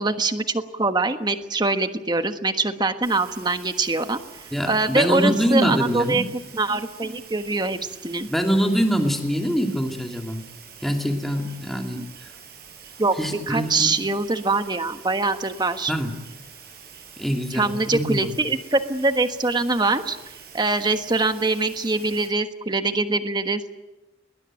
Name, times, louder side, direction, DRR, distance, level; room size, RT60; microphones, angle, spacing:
voice 1, 0.0-4.2 4.7-6.2 6.5-8.3 11.9-12.1 13.0-13.2 13.5-15.9 17.5-23.6, right 3 dB, 25° right, 8 dB, 1.4 m, -23 dB
sound 1, 3.0-22.3, right 6 dB, 60° right, 7.1 m, -45 dB
voice 2, 4.5-6.3 8.3-10.5 10.8-12.0 13.2-13.9 15.9-16.2 17.2-18.4, equal, ahead, 2 dB, 2.7 m, -24 dB
21.0 x 20.0 x 9.1 m, 1.1 s
head